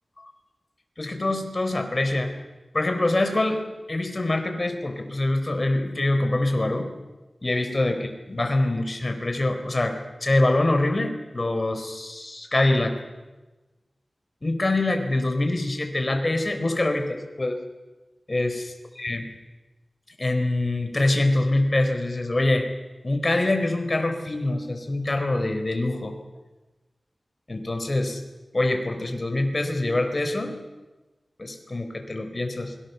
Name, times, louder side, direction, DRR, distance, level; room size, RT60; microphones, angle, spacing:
voice 1, 1.0-2.3 2.7-3.6 3.9-6.9 7.4-13.0 14.4-17.6 18.3-18.7 19.0-19.2 20.2-22.7 23.0-26.1 27.5-28.2 28.5-30.6 31.4-32.7, left 2 dB, 40° left, 6 dB, 4.0 m, -24 dB
27.5 x 23.0 x 6.9 m, 1.2 s
wide cardioid pair, 70°, 0 cm